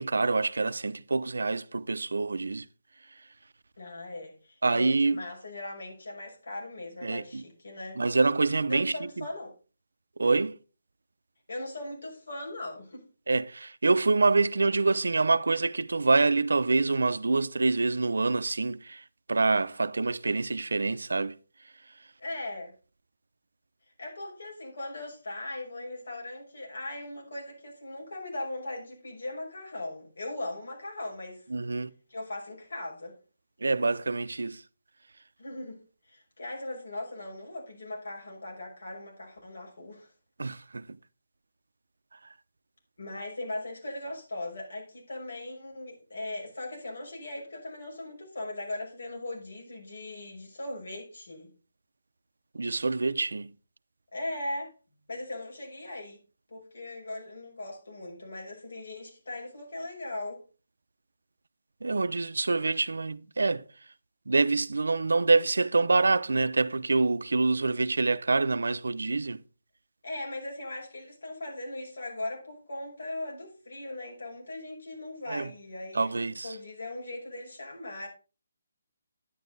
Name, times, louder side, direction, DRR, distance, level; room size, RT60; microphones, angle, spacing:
voice 1, 0.0-2.7 4.6-5.2 7.0-7.4 8.0-9.3 10.2-10.6 13.3-21.4 31.5-31.9 33.6-34.6 40.4-40.9 52.5-53.5 61.8-63.6 64.3-69.4 75.3-75.5 75.9-76.5, right 3 dB, 90° right, 0.6 m, -26 dB
voice 2, 3.8-8.0 8.7-9.5 10.2-10.3 11.5-13.0 22.2-22.7 24.0-31.5 32.1-33.1 35.4-35.8 36.1-40.1 43.0-51.5 54.1-54.7 55.1-56.2 56.5-60.4 70.0-76.1 76.4-78.1, left 2 dB, 80° left, 6.1 m, -39 dB
9.9 x 9.5 x 4.0 m
hypercardioid pair, 165°, 0 cm